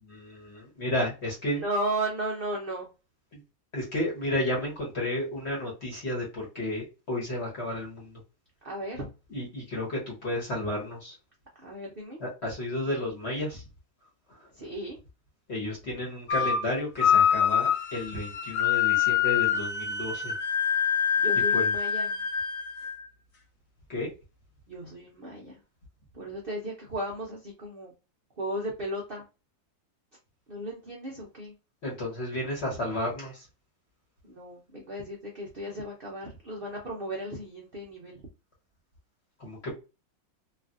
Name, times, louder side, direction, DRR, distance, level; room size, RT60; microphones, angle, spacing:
voice 1, 0.0-1.6 3.3-3.4 3.7-8.2 9.3-11.1 12.2-13.6 15.5-20.3 21.5-21.7 23.9-24.1 31.8-33.5 39.4-39.8, left 1 dB, 45° left, -3 dB, 1.0 m, -32 dB
voice 2, 1.6-2.9 8.6-9.1 11.6-12.2 14.6-15.0 21.2-22.1 24.7-25.5 26.1-27.9 28.4-29.2 30.5-31.5 34.2-38.2, right 1 dB, 75° right, -2 dB, 0.5 m, -35 dB
sound 1, 16.3-16.7 17.0-23.0, left 8 dB, 75° left, 0.7 m, -25 dB
3.1 x 2.5 x 2.4 m, 0.30 s
omnidirectional pair, 2.0 m